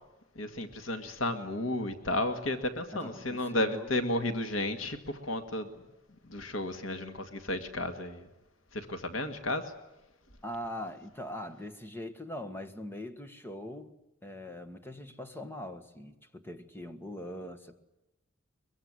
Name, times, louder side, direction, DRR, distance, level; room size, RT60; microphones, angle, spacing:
voice 1, 0.4-5.7 6.2-8.3 8.7-9.7, left 1 dB, 85° left, 2.0 m, -33 dB
voice 2, 2.9-3.9 10.4-17.8, left 1 dB, 10° left, 1.7 m, -42 dB
23.0 x 23.0 x 9.7 m
head